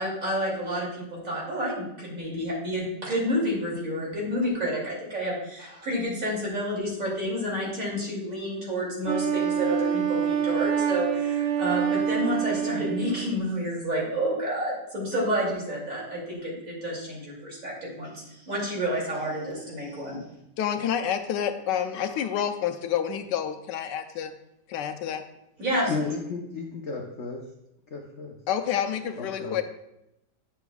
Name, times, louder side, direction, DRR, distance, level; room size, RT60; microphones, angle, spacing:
voice 1, 0.0-20.2 25.6-26.0, equal, 50° right, -4 dB, 2.9 m, -29 dB
Wind instrument woodwind instrument, 9.1-13.4, right 8 dB, 75° right, 1.2 m, -26 dB
voice 2, 20.6-24.3 24.7-25.2 28.5-29.6, left 9 dB, 80° left, 8 dB, 1.2 m, -28 dB
voice 3, 25.9-27.4 27.9-28.3 29.2-29.6, left 4 dB, 60° left, 1 dB, 0.8 m, -33 dB
9.7 x 7.0 x 2.3 m, 0.86 s
omnidirectional pair, 1.9 m